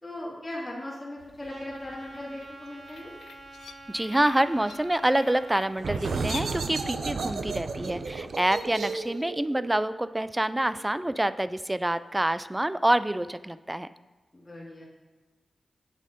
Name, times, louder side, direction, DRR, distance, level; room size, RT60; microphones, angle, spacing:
voice 1, 0.0-3.1 14.3-14.8, left 1 dB, 20° left, -8 dB, 2.5 m, -38 dB
sound 1, 1.2-6.5, left 6 dB, 90° left, 0.4 m, -48 dB
Trumpet, 1.5-5.7, right 2 dB, 50° right, 1.3 m, -47 dB
voice 2, 3.9-13.9, right 1 dB, 15° right, 14 dB, 0.4 m, -27 dB
sound 2, 5.8-11.2, right 4 dB, 80° right, 0.7 m, -34 dB
8.6 x 7.3 x 5.2 m, 1.2 s
cardioid pair, 70°, 0 cm